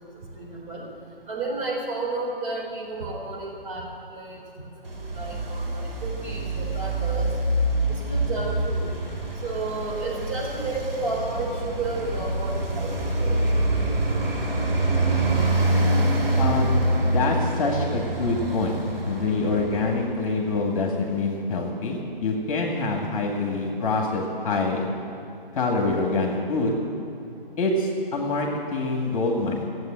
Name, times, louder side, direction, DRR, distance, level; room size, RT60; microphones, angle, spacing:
voice 1, 0.4-0.9 1.3-3.9 4.1-7.3 7.9-8.9 9.4-13.4, right 2 dB, 35° right, -4 dB, 4.2 m, -32 dB
Traffic noise roadway noise, 4.9-20.3, right 1 dB, 80° right, 2.7 m, -25 dB
voice 2, 15.1-15.4 16.4-16.7 17.0-18.8 19.1-24.9 25.5-26.8 27.6-29.7, left 3 dB, 35° left, 0 dB, 2.1 m, -25 dB
14.0 x 8.4 x 8.9 m, 2.8 s
figure-of-eight pair, 145°, 29 cm